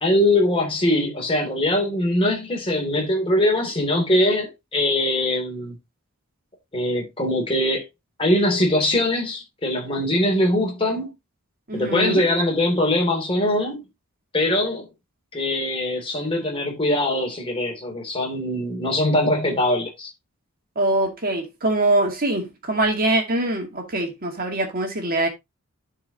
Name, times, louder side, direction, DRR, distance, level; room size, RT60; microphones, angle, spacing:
voice 1, 0.0-5.7 6.7-7.8 8.2-11.1 11.7-13.8 14.3-14.9 15.3-20.1, left 1 dB, 25° left, 2.8 m, -22 dB
voice 2, 11.7-12.2 20.8-25.3, right 2 dB, 40° right, 2.2 m, -23 dB
11.5 x 4.9 x 2.8 m
head